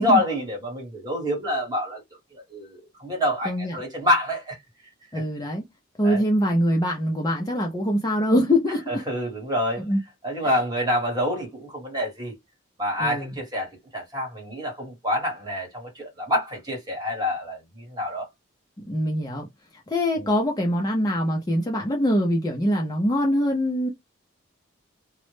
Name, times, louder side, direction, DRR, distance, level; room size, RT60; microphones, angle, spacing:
voice 1, 0.0-2.0 2.3-4.6 5.1-5.2 6.0-6.2 8.9-9.8 10.2-12.3 12.8-18.3 20.2-20.3, left 1 dB, 20° right, 1.0 m, -27 dB
voice 2, 3.4-3.8 5.1-5.6 6.0-9.0 9.8-10.0 10.4-10.5 13.0-13.3 18.9-19.5 19.9-23.9, equal, 20° left, 0.4 m, -23 dB
2.0 x 2.0 x 3.0 m
head